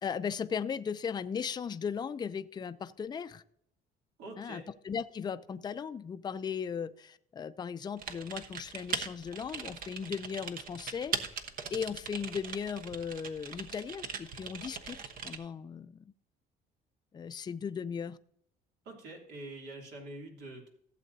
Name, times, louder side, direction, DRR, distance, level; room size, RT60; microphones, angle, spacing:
voice 1, 0.0-3.4 4.4-11.4 11.7-15.0 15.2-16.0 17.1-18.2, left 7 dB, 25° left, 11 dB, 0.4 m, -37 dB
voice 2, 4.2-4.6 18.8-20.7, right 2 dB, 80° right, 0 dB, 2.9 m, -45 dB
Typing, 8.0-15.4, right 6 dB, 55° right, 1.1 m, -40 dB
15.5 x 7.5 x 2.7 m, 0.67 s
cardioid pair, 110°, 17 cm